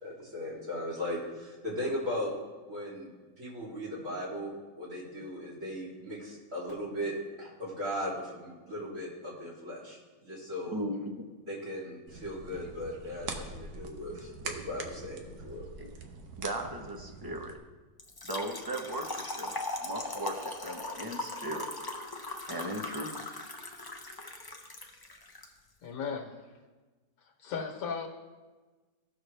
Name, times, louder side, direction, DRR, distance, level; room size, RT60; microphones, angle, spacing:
voice 1, 0.0-2.3 2.6-3.1 3.4-7.1 7.4-10.9 11.4-15.6, left 1 dB, 50° right, -6 dB, 3.3 m, -38 dB
voice 2, 10.7-11.3 15.8-15.9 16.4-17.6 18.2-21.7 22.5-23.2, right 1 dB, 20° right, 2 dB, 0.7 m, -37 dB
sound 1, 12.1-17.6, right 4 dB, 75° right, 1.4 m, -43 dB
Trickle dribble / Fill (with liquid), 18.0-25.5, left 2 dB, 25° left, 0.5 m, -39 dB
voice 3, 25.8-26.3 27.2-28.1, left 6 dB, 65° left, 1 dB, 1.6 m, -36 dB
17.0 x 6.3 x 3.3 m, 1.3 s
omnidirectional pair, 1.7 m